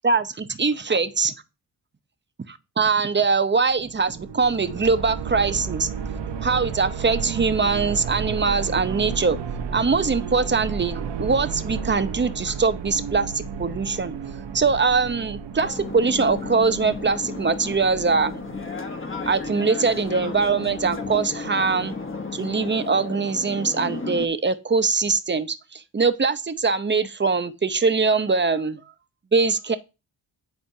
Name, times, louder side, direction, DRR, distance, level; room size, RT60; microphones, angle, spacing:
voice 1, 0.0-1.3 2.5-5.9 6.4-9.4 9.7-14.1 14.5-18.4 19.3-22.0 22.3-28.8 29.3-29.8, right 4 dB, 25° right, 0.8 m, -22 dB
sound 1, 3.7-18.7, right 6 dB, 85° right, 0.9 m, -32 dB
sound 2, 15.6-24.3, left 4 dB, 30° left, 1.2 m, -33 dB
10.5 x 4.2 x 2.7 m
cardioid pair, 60°, 41 cm